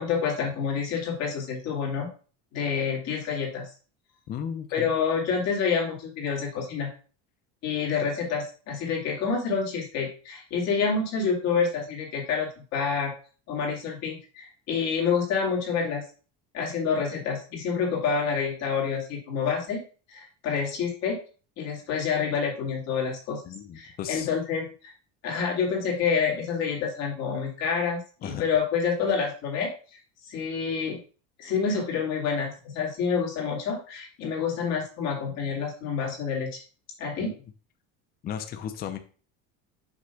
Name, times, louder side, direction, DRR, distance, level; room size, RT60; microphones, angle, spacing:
voice 1, 0.0-2.1 2.5-3.7 4.7-6.9 7.6-13.1 13.5-16.0 16.5-19.8 20.1-21.2 21.6-23.4 23.7-24.9 25.2-29.7 30.3-31.0 31.4-36.6 37.0-37.3, left 6 dB, 50° left, -1 dB, 2.4 m, -28 dB
voice 2, 4.3-4.9 23.5-24.3 28.2-28.4 37.2-37.4 38.2-39.0, left 8 dB, 25° left, 8 dB, 0.6 m, -35 dB
6.2 x 3.0 x 5.7 m, 0.38 s
cardioid pair, 155°, 34 cm